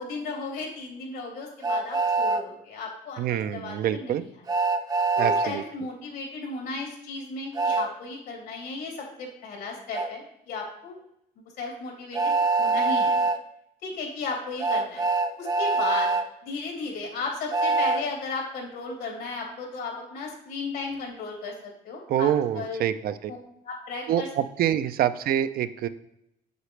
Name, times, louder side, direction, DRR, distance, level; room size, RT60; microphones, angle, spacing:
voice 1, 0.0-4.1 5.1-11.0 11.4-13.1 13.8-15.0 15.4-16.1 16.4-22.8 23.3-23.4 23.6-24.3 24.6-24.8, left 3 dB, 80° left, -1 dB, 3.3 m, -35 dB
Train, 1.6-2.4 4.5-5.5 7.5-7.9 9.9-10.1 12.1-13.4 14.6-16.2 17.5-18.0, right 3 dB, 20° right, 0.6 m, -24 dB
voice 2, 3.2-4.2 5.2-5.6 22.1-23.3 24.1-25.9, right 10 dB, 60° right, 12 dB, 0.5 m, -26 dB
8.0 x 7.5 x 3.3 m, 0.79 s
cardioid pair, 110°, 17 cm